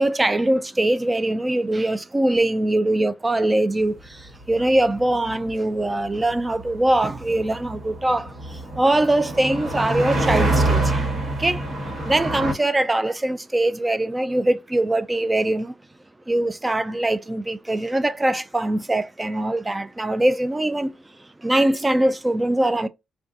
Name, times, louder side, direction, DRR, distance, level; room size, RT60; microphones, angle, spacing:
voice 1, 0.0-4.2 4.5-8.3 8.8-11.1 11.4-11.6 12.0-15.7 16.3-20.9 21.4-22.9, right 1 dB, 20° right, 0.4 m, -22 dB
sound 1, 4.0-12.5, right 2 dB, 50° right, 1.3 m, -26 dB
3.6 x 2.3 x 2.6 m
cardioid pair, 85°, 0 cm